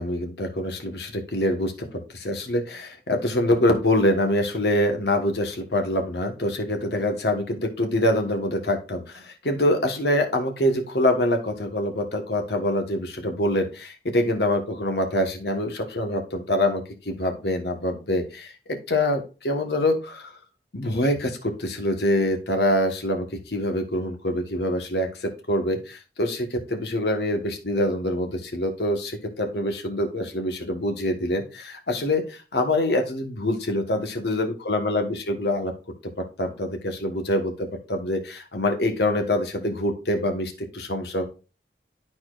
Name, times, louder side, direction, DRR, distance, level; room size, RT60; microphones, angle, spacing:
voice 1, 0.0-20.4 20.7-35.7 36.2-41.2, left 1 dB, 75° left, 5 dB, 1.3 m, -25 dB
12.0 x 4.3 x 2.5 m, 0.32 s
head